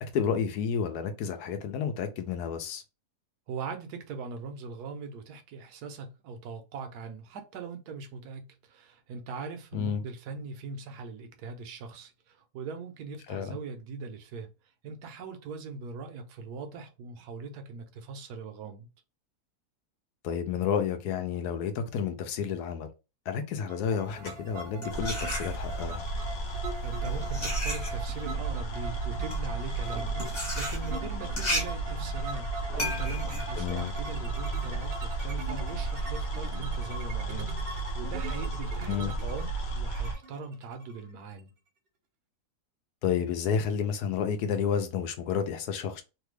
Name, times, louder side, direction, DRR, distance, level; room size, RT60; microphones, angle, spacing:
voice 1, 0.0-2.8 9.7-10.0 13.3-13.6 20.2-22.9 23.3-26.0 33.6-33.9 38.9-39.1 43.0-46.0, left 7 dB, 80° left, 1.1 m, -30 dB
voice 2, 3.5-14.5 14.8-18.9 26.8-41.5, right 4 dB, 80° right, 1.2 m, -41 dB
sound 1, 23.7-41.4, right 3 dB, 60° right, 0.6 m, -42 dB
sound 2, 24.0-26.0 26.7-34.6, left 1 dB, 30° left, 1.1 m, -36 dB
sound 3, 24.9-40.1, right 3 dB, 60° left, 0.7 m, -33 dB
3.3 x 2.3 x 3.2 m
omnidirectional pair, 1.7 m